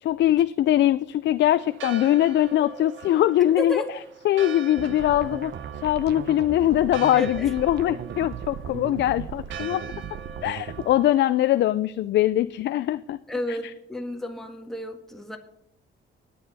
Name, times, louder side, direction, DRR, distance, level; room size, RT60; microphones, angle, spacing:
voice 1, 0.0-3.8 4.2-9.8 10.4-13.2 13.5-13.6, left 13 dB, 65° left, 14 dB, 0.4 m, -22 dB
Church bell, 1.5-11.7, right 6 dB, 80° right, 0.9 m, -42 dB
voice 2, 3.6-3.9 7.1-7.5 13.3-15.4, left 1 dB, ahead, 2 dB, 1.6 m, -31 dB
sound 1, 4.7-10.9, right 8 dB, 55° right, 0.8 m, -37 dB
19.5 x 8.7 x 4.1 m, 0.76 s
cardioid pair, 90°, 20 cm